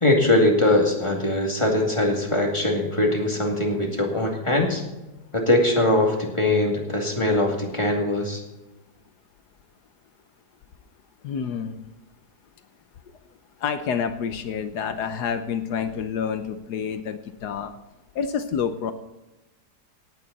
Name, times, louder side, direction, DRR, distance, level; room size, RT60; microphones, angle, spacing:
voice 1, 0.0-4.8 5.3-8.4, left 1 dB, 15° left, 1 dB, 2.3 m, -21 dB
voice 2, 11.2-11.8 13.6-17.8 18.1-18.9, left 7 dB, 75° left, 9 dB, 1.4 m, -28 dB
17.5 x 9.3 x 4.1 m, 1.0 s
omnidirectional pair, 1.8 m